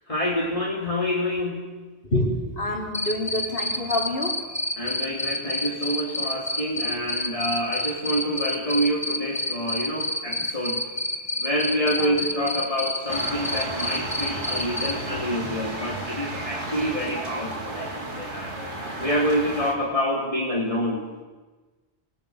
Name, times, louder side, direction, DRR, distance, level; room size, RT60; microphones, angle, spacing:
voice 1, 0.1-1.7 4.8-10.8 11.4-18.5 19.0-21.1, equal, 30° left, -5 dB, 3.4 m, -27 dB
voice 2, 2.1-4.4 11.9-12.2, left 1 dB, 55° left, -1 dB, 3.8 m, -27 dB
Cricket, 2.9-14.9, left 1 dB, 15° left, 1.8 m, -27 dB
sound 1, 13.1-19.7, right 2 dB, 80° right, 3.6 m, -33 dB
28.0 x 20.5 x 6.5 m, 1.2 s
omnidirectional pair, 1.1 m